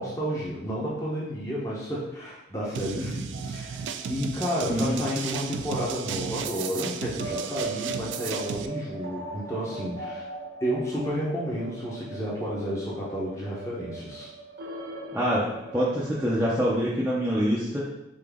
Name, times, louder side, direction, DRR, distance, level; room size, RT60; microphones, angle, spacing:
voice 1, 0.0-3.8 4.1-10.3 10.6-14.3, equal, 15° left, -6 dB, 0.8 m, -31 dB
sound 1, 2.7-8.7, right 7 dB, 75° right, 0.3 m, -34 dB
sound 2, 3.3-16.5, right 3 dB, 55° right, 0.7 m, -40 dB
voice 2, 4.7-5.0 15.1-17.9, equal, 10° right, -7 dB, 0.5 m, -25 dB
4.0 x 3.8 x 3.5 m, 0.91 s
head